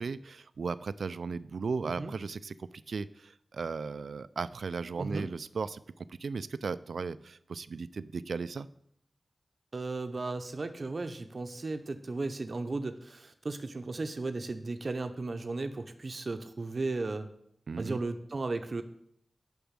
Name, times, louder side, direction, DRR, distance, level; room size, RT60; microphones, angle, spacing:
voice 1, 0.0-8.7 17.7-18.0, right 4 dB, 85° right, 16 dB, 0.3 m, -36 dB
voice 2, 9.7-17.3 17.8-18.8, right 3 dB, 55° right, 8 dB, 0.7 m, -35 dB
6.9 x 6.1 x 7.4 m, 0.72 s
wide cardioid pair, 70°, 0 cm